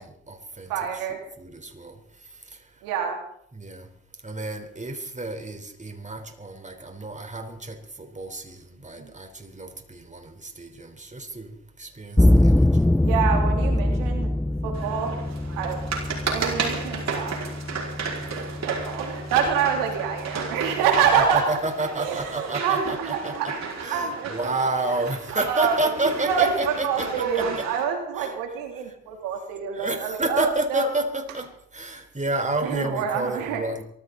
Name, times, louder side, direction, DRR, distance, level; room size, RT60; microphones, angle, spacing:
voice 1, 0.0-2.8 3.5-3.9 4.2-12.9 13.9-14.0 18.2-18.5 21.2-23.6 23.8-27.7 28.2-28.3 29.7-33.8, right 2 dB, 20° right, 6 dB, 4.0 m, -30 dB
voice 2, 0.7-1.2 2.8-3.2 9.0-9.1 13.0-14.3 14.6-15.2 15.6-15.8 16.2-17.3 18.6-21.6 22.0-23.5 23.9-24.5 25.3-25.9 26.2-30.9 32.6-33.6, right 7 dB, 85° right, 3 dB, 3.1 m, -26 dB
sound 1, 12.2-21.2, left 1 dB, 5° left, 0.5 m, -24 dB
sound 2, 14.7-27.8, right 5 dB, 55° right, 5.2 m, -33 dB
23.0 x 15.0 x 4.0 m, 0.69 s
hypercardioid pair, 45°, 33 cm